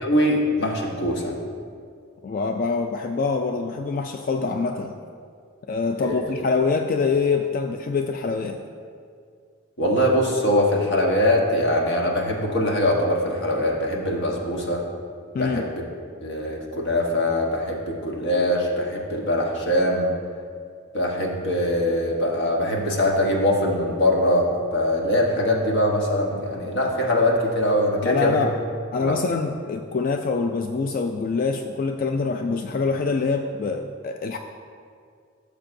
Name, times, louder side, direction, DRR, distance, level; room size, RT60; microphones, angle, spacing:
voice 1, 0.0-1.4 6.0-6.2 9.8-14.8 15.3-15.6 16.2-20.1 20.9-28.5 29.0-29.1, left 1 dB, 60° left, -1 dB, 1.2 m, -22 dB
voice 2, 2.2-4.9 5.7-8.6 15.3-15.6 28.0-28.5 28.9-34.4, left 4 dB, 40° left, 5 dB, 0.3 m, -25 dB
13.0 x 6.7 x 2.6 m, 2.2 s
head